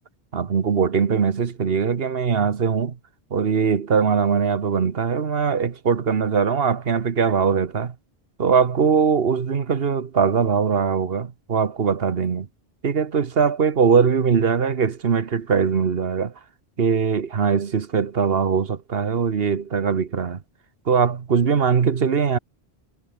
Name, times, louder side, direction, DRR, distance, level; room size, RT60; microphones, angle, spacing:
voice 1, 0.3-2.9 3.3-7.9 8.4-12.5 12.8-16.3 16.8-20.4 20.9-22.4, right 6 dB, 70° right, 1.4 m, -21 dB
omnidirectional pair, 1.0 m